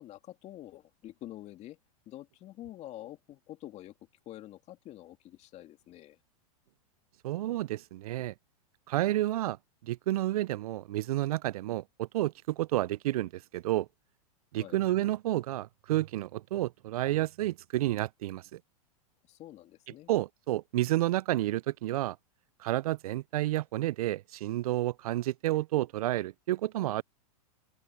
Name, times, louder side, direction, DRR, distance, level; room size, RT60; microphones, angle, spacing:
voice 1, 0.0-1.8 2.1-4.0 4.3-6.2 14.6-14.8 19.2-20.1, left 14 dB, 35° left, 2.7 m, -47 dB
voice 2, 7.2-8.3 8.9-9.6 9.8-13.9 14.5-18.6 20.1-22.2 22.6-27.0, right 15 dB, 70° right, 0.5 m, -30 dB
hypercardioid pair, 120°, 20 cm